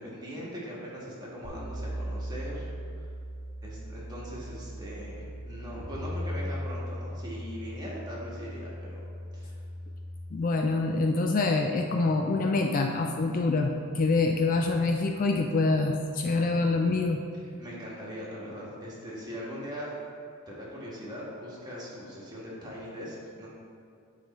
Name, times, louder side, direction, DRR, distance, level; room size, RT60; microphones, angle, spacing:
voice 1, 0.0-2.7 3.0-3.1 3.6-9.0 9.3-9.5 17.4-19.9 20.5-23.5, equal, 20° right, -6 dB, 1.4 m, -40 dB
sound 1, 1.4-10.2, equal, 60° left, 1.2 m, -38 dB
voice 2, 10.3-17.2, left 3 dB, 40° left, 3 dB, 0.3 m, -26 dB
10.0 x 3.4 x 4.1 m, 2.4 s
head